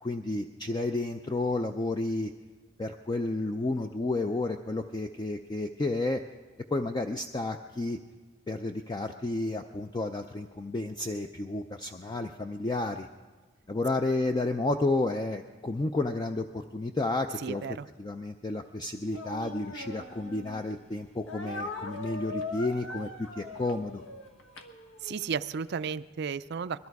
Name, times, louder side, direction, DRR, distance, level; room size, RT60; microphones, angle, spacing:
voice 1, 0.0-2.3 2.8-6.2 6.7-8.0 8.5-13.1 13.7-17.6 18.0-24.0, left 2 dB, 20° left, 6 dB, 0.4 m, -31 dB
voice 2, 17.4-17.9 25.0-26.9, right 6 dB, 55° right, 14 dB, 0.4 m, -34 dB
Speech, 19.1-20.6 21.3-25.3, left 2 dB, 75° left, 1.4 m, -41 dB
21.5 x 14.0 x 4.7 m, 1.4 s
head